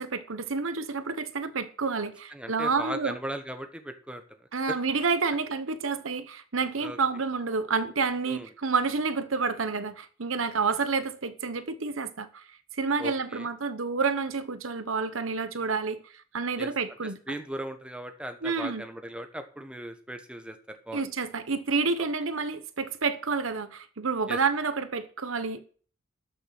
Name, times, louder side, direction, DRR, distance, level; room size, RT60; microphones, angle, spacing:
voice 1, 0.0-3.2 4.5-12.4 12.7-16.0 16.3-17.4 18.4-18.8 20.9-25.6, right 4 dB, 80° right, 1.0 m, -29 dB
voice 2, 2.3-4.5 6.8-7.0 8.2-8.5 13.0-13.5 16.6-16.7 17.3-21.1 24.3-24.4, right 1 dB, 5° right, 1.1 m, -38 dB
13.0 x 6.6 x 6.0 m
head